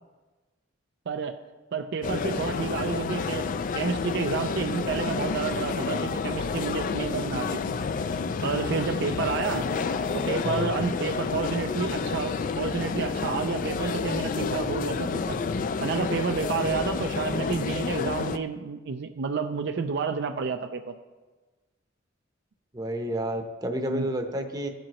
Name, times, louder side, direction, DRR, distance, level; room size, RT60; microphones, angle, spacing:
voice 1, 1.1-1.4 1.7-3.5 3.7-7.6 8.4-9.7 10.1-15.4 15.8-20.9 23.9-24.1, right 5 dB, 60° right, 7 dB, 0.4 m, -30 dB
sound 1, 2.0-18.4, left 5 dB, 45° left, 0.3 m, -29 dB
voice 2, 22.7-24.7, right 1 dB, 20° right, 4 dB, 0.8 m, -30 dB
14.5 x 7.7 x 3.0 m, 1.3 s
head